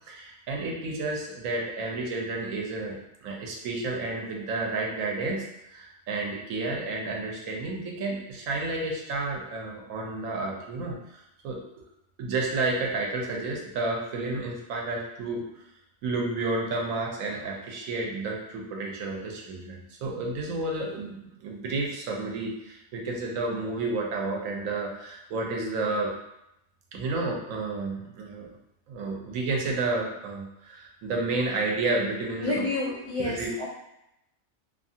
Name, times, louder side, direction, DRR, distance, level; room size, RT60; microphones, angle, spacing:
voice 1, 0.1-11.6 12.2-15.5 16.0-26.2 26.9-28.5 28.9-32.7 33.2-33.5, right 3 dB, 75° right, 0 dB, 1.0 m, -31 dB
voice 2, 32.4-33.7, left 2 dB, 65° left, -9 dB, 0.3 m, -29 dB
2.7 x 2.4 x 2.7 m, 0.84 s
omnidirectional pair, 1.4 m